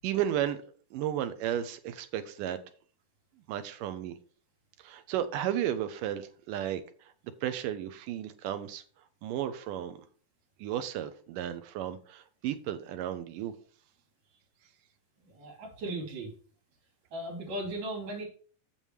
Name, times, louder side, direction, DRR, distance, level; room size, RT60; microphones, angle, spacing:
voice 1, 0.0-0.6 0.9-2.6 3.5-4.2 4.8-6.8 7.4-8.8 9.2-10.0 10.6-13.5, right 11 dB, 80° right, 2.1 m, -33 dB
voice 2, 15.3-16.3 17.1-18.2, right 1 dB, 60° right, 4.4 m, -37 dB
7.3 x 6.9 x 4.6 m
omnidirectional pair, 4.2 m